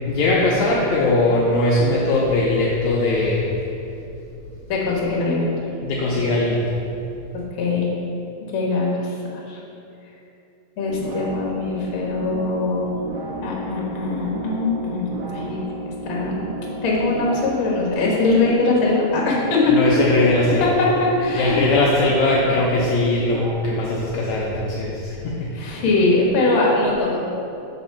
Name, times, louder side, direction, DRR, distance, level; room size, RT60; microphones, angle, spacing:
voice 1, 0.1-3.4 5.8-6.7 19.7-20.7 21.3-25.8, left 2 dB, 80° left, -5 dB, 1.7 m, -20 dB
voice 2, 4.7-5.5 7.6-7.9 8.5-9.1 9.5-9.6 10.8-12.9 13.4-15.6 16.0-16.4 16.8-19.8 20.6-21.8 25.6-27.2, left 3 dB, 55° left, -4 dB, 1.5 m, -21 dB
sound 1, 10.9-23.5, right 1 dB, 60° right, 1.7 m, -33 dB
7.4 x 4.1 x 5.7 m, 2.8 s
omnidirectional pair, 4.1 m